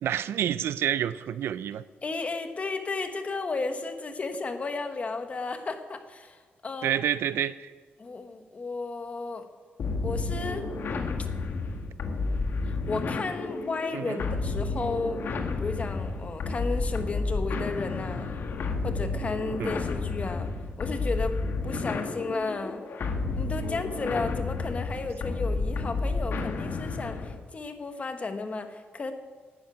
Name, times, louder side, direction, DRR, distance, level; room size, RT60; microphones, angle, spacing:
voice 1, 0.0-1.8 6.8-7.7 13.9-14.2 19.6-19.8, right 10 dB, 85° right, 15 dB, 0.5 m, -28 dB
voice 2, 2.0-6.9 8.0-9.5 10.0-10.7 11.2-11.3 12.6-15.2 15.6-18.3 18.8-20.5 20.8-22.8 23.3-29.1, left 3 dB, 35° left, 7 dB, 1.3 m, -33 dB
sound 1, 9.8-27.4, left 3 dB, 65° left, 1.6 m, -31 dB
11.0 x 9.7 x 9.0 m, 1.5 s
cardioid pair, 110°, 4 cm